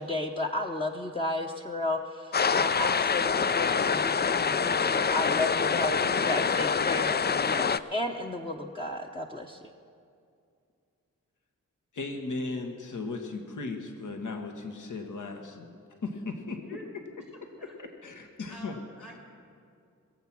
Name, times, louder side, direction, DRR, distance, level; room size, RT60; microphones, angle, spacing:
voice 1, 0.0-9.6, left 2 dB, 15° left, 0 dB, 0.9 m, -33 dB
sound 1, 2.3-7.8, left 6 dB, 30° left, 0.4 m, -26 dB
voice 2, 11.9-15.8 16.0-16.6 17.6-18.8, left 3 dB, 65° left, 4 dB, 1.4 m, -36 dB
voice 3, 18.5-19.2, left 1 dB, 90° left, -5 dB, 3.7 m, -46 dB
21.5 x 7.4 x 6.1 m, 2.4 s
cardioid pair, 45°, 33 cm